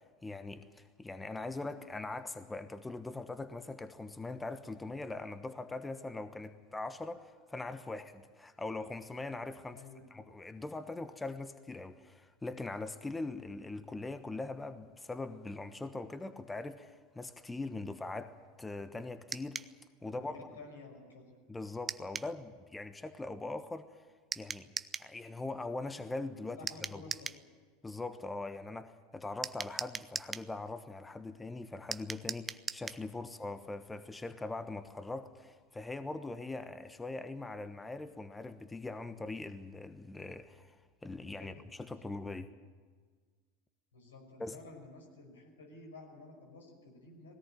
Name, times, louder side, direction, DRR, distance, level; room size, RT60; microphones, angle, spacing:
voice 1, 0.0-9.8 10.1-20.5 21.5-24.1 24.4-24.7 25.0-26.6 26.9-27.0 27.8-40.8 41.0-42.5 44.4-44.6, left 2 dB, 15° left, 1.1 m, -41 dB
voice 2, 9.7-10.1 20.1-21.3 26.6-27.3 41.4-42.1 43.9-47.3, left 3 dB, 85° left, 5.8 m, -52 dB
sound 1, 19.3-19.7 21.9-22.3 24.3-25.1 26.7-27.4 29.4-30.5 31.9-33.0, right 5 dB, 20° right, 0.7 m, -40 dB
20.0 x 18.0 x 9.1 m
hypercardioid pair, 90°, 0 cm